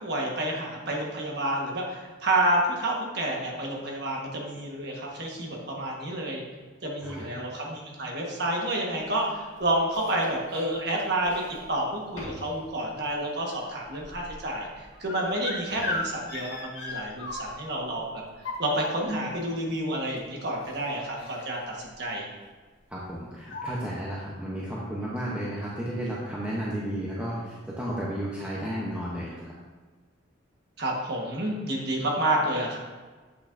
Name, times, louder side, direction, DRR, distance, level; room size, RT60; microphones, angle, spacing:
voice 1, 0.0-6.4 6.8-11.4 11.7-22.2 30.8-32.8, right 1 dB, 55° right, -1 dB, 1.3 m, -29 dB
voice 2, 7.0-7.3 22.9-29.5, equal, 5° right, -6 dB, 0.8 m, -33 dB
sound 1, 9.2-10.6 11.2-11.7 12.2-12.5 12.9-17.7 18.3-19.3 20.2-20.3 20.6-20.8 21.1-21.6 21.9-22.1 23.0-23.1 23.4-23.7, left 2 dB, 70° left, 1.6 m, -37 dB
8.1 x 6.6 x 2.6 m, 1.4 s
head